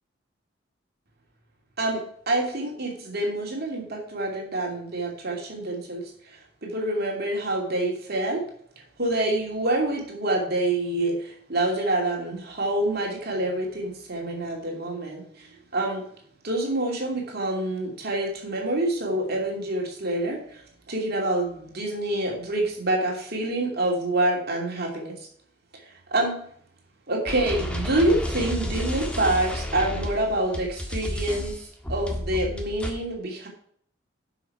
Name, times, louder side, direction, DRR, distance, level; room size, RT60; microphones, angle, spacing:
voice 1, 1.8-8.4 9.0-16.0 16.4-20.6 20.9-25.1 26.1-26.4 27.1-33.5, right 1 dB, 55° right, 0 dB, 2.8 m, -27 dB
sound 1, 27.2-32.9, left 1 dB, 5° left, 1.6 m, -31 dB
10.5 x 6.1 x 4.7 m, 0.63 s
head